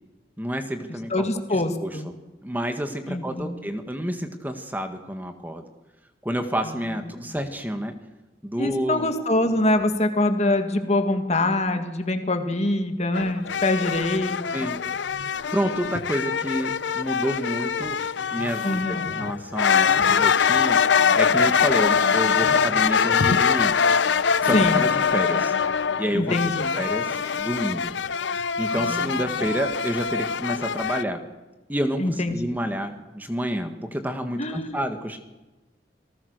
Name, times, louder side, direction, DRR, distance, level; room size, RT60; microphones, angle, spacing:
voice 1, 0.4-1.1 1.5-1.9 2.4-5.6 6.2-7.9 8.4-9.1 14.5-14.8 15.5-18.0 18.3-18.8 19.1-20.8 21.2-23.8 24.2-25.5 26.0-26.4 26.7-27.9 28.6-31.2 31.7-35.2, equal, 10° right, 6 dB, 1.6 m, -29 dB
voice 2, 1.1-2.1 3.1-3.6 8.6-14.7 18.6-19.2 24.5-24.9 26.1-26.8 28.7-29.2 32.0-32.4 34.4-34.8, left 1 dB, 40° left, 7 dB, 2.1 m, -24 dB
sound 1, 13.1-31.0, left 6 dB, 85° left, 0.7 m, -23 dB
28.0 x 19.0 x 6.6 m, 1.1 s
head